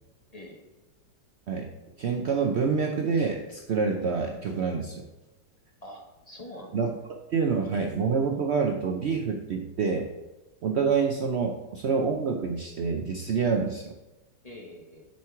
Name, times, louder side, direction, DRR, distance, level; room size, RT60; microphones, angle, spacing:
voice 1, 0.3-0.8 5.8-6.8 14.4-15.1, left 1 dB, 25° left, 0 dB, 1.0 m, -45 dB
voice 2, 1.5-5.1 6.7-10.1 10.6-13.9, right 5 dB, 90° right, 3 dB, 0.5 m, -27 dB
7.2 x 4.5 x 4.8 m, 1.0 s
omnidirectional pair, 2.0 m